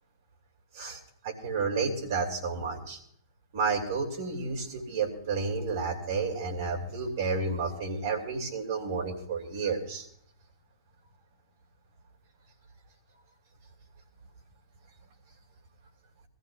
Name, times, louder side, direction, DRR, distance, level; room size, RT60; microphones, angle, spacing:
voice 1, 1.2-3.0 3.5-10.0, right 4 dB, 55° right, 1 dB, 2.7 m, -31 dB
24.0 x 15.0 x 2.4 m, 0.64 s
figure-of-eight pair, 105°, 2 cm